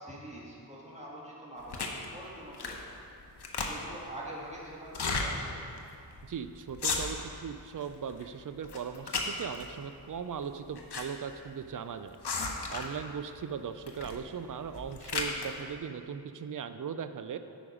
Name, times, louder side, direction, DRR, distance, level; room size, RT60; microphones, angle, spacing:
voice 1, 0.0-2.9 3.5-5.7, right 1 dB, 15° right, -5 dB, 1.8 m, -45 dB
sound 1, 1.7-2.0 2.5-2.9 3.2-4.0 4.9-5.3 5.8-5.9 6.1-6.3 6.7-7.4 7.8-8.3 8.6-9.7 10.4-11.0 11.3-11.4 12.2-13.0 13.9-14.2 14.6-15.5, left 4 dB, 90° left, 0.8 m, -34 dB
voice 2, 6.2-12.2 12.7-17.4, right 7 dB, 55° right, 10 dB, 0.4 m, -38 dB
8.6 x 5.2 x 4.9 m, 2.6 s
wide cardioid pair, 75°, 39 cm